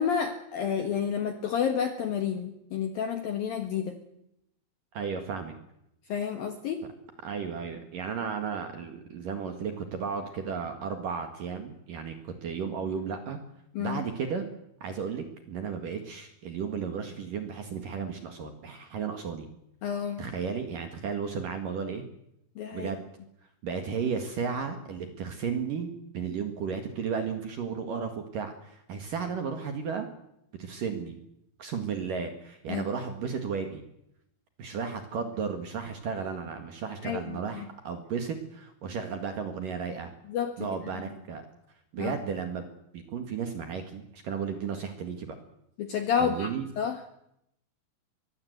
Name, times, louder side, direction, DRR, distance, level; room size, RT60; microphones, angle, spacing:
voice 1, 0.0-4.0 6.1-6.9 13.7-14.0 19.8-20.3 22.6-22.9 32.7-32.9 37.0-37.7 40.3-40.7 40.9-41.0 42.0-42.1 45.8-47.0, left 7 dB, 70° left, 7 dB, 2.3 m, -30 dB
voice 2, 4.9-5.5 7.2-13.4 13.8-14.5 14.8-19.5 20.2-22.0 22.7-23.0 23.6-25.9 26.1-30.1 30.6-31.2 31.6-33.8 34.6-40.1 40.6-41.4 41.9-42.7 42.9-45.3 46.2-46.6, right 6 dB, 55° right, 6 dB, 2.6 m, -34 dB
23.5 x 21.5 x 8.1 m, 0.80 s
omnidirectional pair, 6.0 m